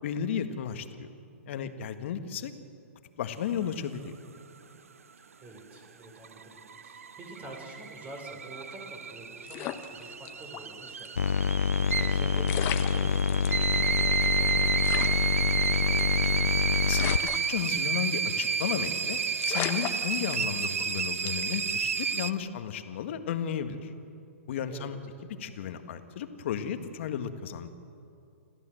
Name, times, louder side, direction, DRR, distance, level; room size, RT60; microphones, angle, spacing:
voice 1, 0.0-1.1 1.5-2.5 3.2-4.1 16.8-19.2 19.4-23.9 24.5-25.0 25.4-27.7, left 8 dB, 60° left, 8 dB, 1.7 m, -34 dB
voice 2, 5.4-6.6 6.8-11.1 11.5-16.4 24.7-24.9, right 2 dB, 20° right, 1 dB, 5.2 m, -47 dB
sound 1, 6.0-22.3, right 6 dB, 85° right, 0.7 m, -31 dB
sound 2, 9.5-10.7 11.0-11.1 12.1-12.2 12.5-13.6 14.1-14.2 14.4-14.5 14.8-16.4 16.9-18.1 18.4-18.7 19.0-19.1 19.4-20.8 21.3-21.6, left 12 dB, 35° left, 1.2 m, -36 dB
sound 3, 11.2-17.2, left 5 dB, 90° left, 0.4 m, -26 dB
27.5 x 14.5 x 7.8 m, 2.6 s
hypercardioid pair, 125°, 7 cm